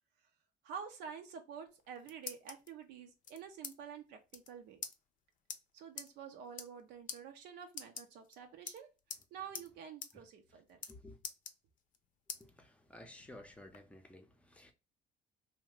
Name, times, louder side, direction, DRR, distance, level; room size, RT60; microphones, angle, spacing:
voice 1, 0.6-4.8 5.7-8.9 9.3-10.8, right 7 dB, 80° right, 0.6 m, -49 dB
sound 1, 1.7-2.7 3.2-3.7 4.0-4.1 4.3-4.5 4.8-4.9 5.5-5.6 6.0-6.1 6.5-6.8 7.1-7.2 7.7-8.3 8.7-9.2 9.5-9.7 10.0-10.1 10.4-10.9 11.2-12.0 12.3-12.4 12.9-13.8, left 7 dB, 50° left, 0.5 m, -45 dB
voice 2, 10.9-11.2 12.4-14.7, left 1 dB, 5° left, 0.6 m, -54 dB
2.8 x 2.2 x 3.2 m
cardioid pair, 110°, 17 cm